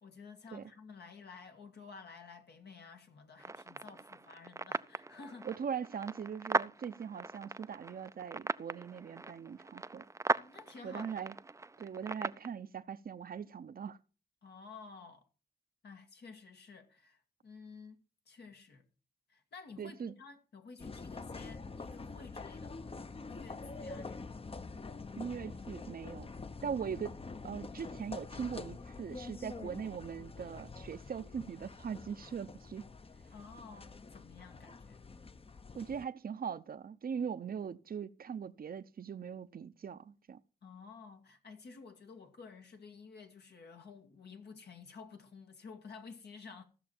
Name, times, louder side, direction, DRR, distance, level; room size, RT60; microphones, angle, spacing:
voice 1, 0.0-5.5 10.3-11.2 14.4-15.2 15.8-18.0 18.3-18.8 19.3-23.0 23.3-24.3 33.3-35.0 40.6-46.6, left 5 dB, 75° left, 1.6 m, -52 dB
sound 1, 3.4-12.5, right 3 dB, 15° right, 0.4 m, -39 dB
voice 2, 5.4-10.0 10.8-11.3 11.8-14.0 19.8-20.1 25.2-26.3 26.6-32.9 35.8-40.4, right 7 dB, 55° right, 0.7 m, -41 dB
sound 2, 20.8-36.1, left 4 dB, 35° left, 0.7 m, -46 dB
15.0 x 6.4 x 4.4 m
cardioid pair, 45°, 18 cm